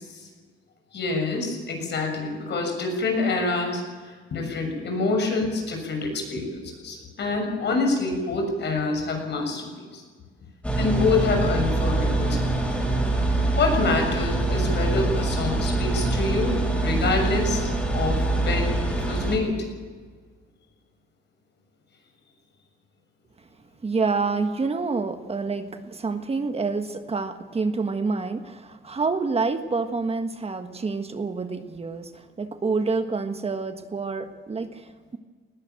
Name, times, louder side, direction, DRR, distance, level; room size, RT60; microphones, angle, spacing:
voice 1, 0.9-10.0 10.8-12.6 13.5-18.7 19.1-19.6, left 3 dB, 60° left, 3 dB, 6.7 m, -26 dB
sound 1, 10.6-19.4, right 2 dB, 5° left, 6.5 m, -24 dB
voice 2, 23.8-35.2, right 4 dB, 30° right, 8 dB, 1.5 m, -28 dB
19.5 x 15.5 x 9.0 m, 1.5 s
cardioid pair, 90°, 20 cm